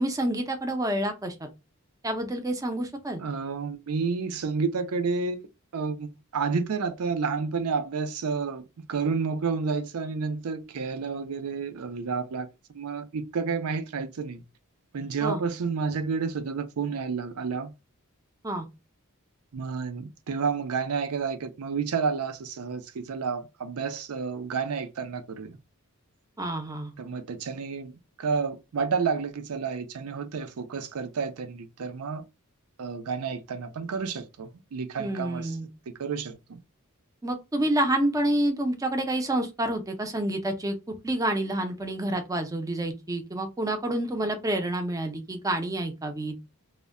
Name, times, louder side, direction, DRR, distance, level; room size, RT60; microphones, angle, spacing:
voice 1, 0.0-1.4 2.0-3.2 15.2-15.4 18.4-18.7 26.4-26.9 35.0-35.7 37.2-40.8 41.0-46.3, right 1 dB, 15° right, 0.5 m, -28 dB
voice 2, 3.2-5.4 5.7-12.5 12.7-14.4 14.9-17.7 19.5-25.6 27.0-27.9 28.2-32.2 32.8-35.6 36.0-36.6, right 5 dB, 75° right, 0.5 m, -30 dB
2.1 x 2.1 x 3.5 m
head